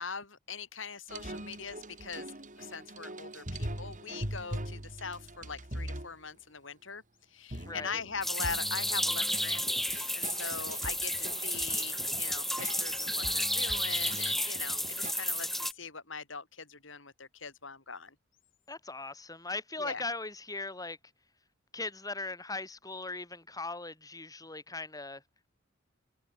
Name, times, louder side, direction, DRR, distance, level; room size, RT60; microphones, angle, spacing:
voice 1, 0.0-2.3 2.6-7.0 7.3-18.1 19.8-20.0, left 5 dB, 75° left, 6.1 m, -41 dB
sound 1, 1.1-6.1 7.5-15.1, right 1 dB, 40° right, 6.9 m, -42 dB
voice 2, 7.7-8.0 18.7-21.0 21.7-25.2, left 3 dB, 20° left, 7.1 m, -39 dB
sound 2, 8.2-15.7, equal, ahead, 4.4 m, -32 dB
head